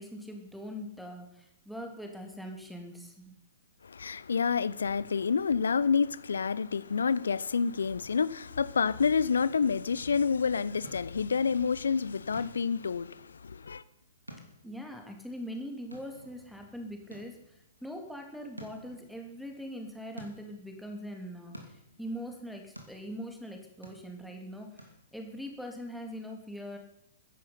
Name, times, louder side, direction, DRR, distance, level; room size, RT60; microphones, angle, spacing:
voice 1, 0.0-3.3 14.6-26.8, equal, ahead, 3.0 m, -42 dB
voice 2, 3.8-13.8, left 5 dB, 65° left, 0.7 m, -28 dB
sound 1, 10.7-25.5, equal, 90° right, 2.9 m, -53 dB
22.0 x 11.0 x 5.8 m
figure-of-eight pair, 115°, 0 cm